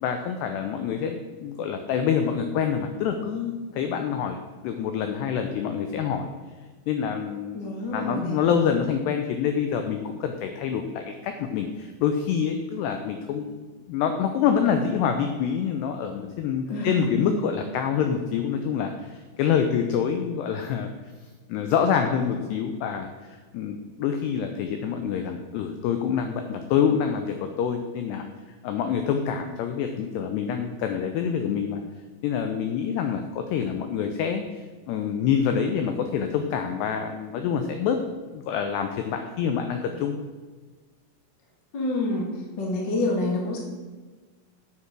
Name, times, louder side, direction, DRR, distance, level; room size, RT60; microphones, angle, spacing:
voice 1, 0.0-6.3 6.9-20.9 21.5-28.3 28.6-31.8 32.2-38.0 38.3-40.2, left 7 dB, 85° left, 6 dB, 2.4 m, -26 dB
voice 2, 7.5-8.4 16.7-17.3 41.7-42.3 42.6-43.6, left 2 dB, 40° left, -1 dB, 1.5 m, -27 dB
9.8 x 8.4 x 6.1 m, 1.4 s
omnidirectional pair, 5.7 m